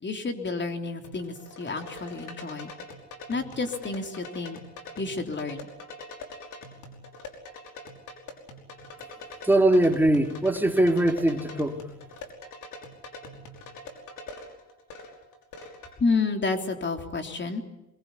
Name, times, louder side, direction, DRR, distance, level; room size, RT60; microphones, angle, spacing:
voice 1, 0.0-2.7 3.3-4.6 5.0-5.7 16.0-17.6, left 3 dB, 35° left, 6 dB, 3.4 m, -30 dB
sound 1, 1.0-15.9, left 2 dB, 80° left, 5.3 m, -44 dB
voice 2, 9.4-11.8, right 1 dB, 5° right, 5 dB, 2.9 m, -21 dB
23.0 x 22.0 x 8.4 m, 0.93 s
cardioid pair, 90°, 30 cm